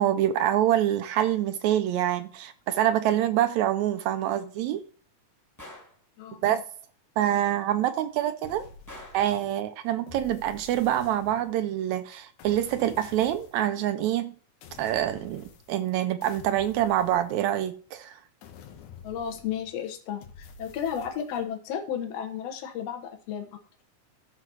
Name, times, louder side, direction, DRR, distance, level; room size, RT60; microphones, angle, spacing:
voice 1, 0.0-4.8 6.4-6.6 7.2-8.7 9.1-14.3 14.8-18.2, right 12 dB, 80° right, 1.8 m, -26 dB
Gunshot gunfire, 5.6-6.0 8.9-9.3, left 1 dB, 10° left, 1.2 m, -45 dB
voice 2, 6.2-6.6 19.0-23.5, left 8 dB, 65° left, 2.2 m, -33 dB
sound 1, 8.4-9.5 10.1-11.7 12.4-13.7 14.6-15.9 16.2-17.8 18.4-19.8 20.2-21.5, left 5 dB, 80° left, 2.5 m, -49 dB
12.5 x 4.2 x 6.1 m
omnidirectional pair, 3.4 m